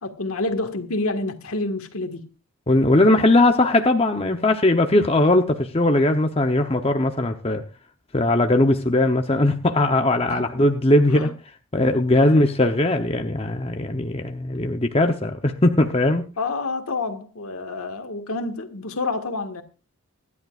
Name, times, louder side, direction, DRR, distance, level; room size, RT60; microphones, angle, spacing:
voice 1, 0.0-2.3 10.3-10.4 11.1-11.3 12.1-12.2 16.4-19.6, left 3 dB, 80° left, 1.6 m, -28 dB
voice 2, 2.7-7.6 8.1-11.3 11.7-16.3, left 1 dB, 25° left, 0.8 m, -19 dB
24.5 x 11.0 x 2.4 m
head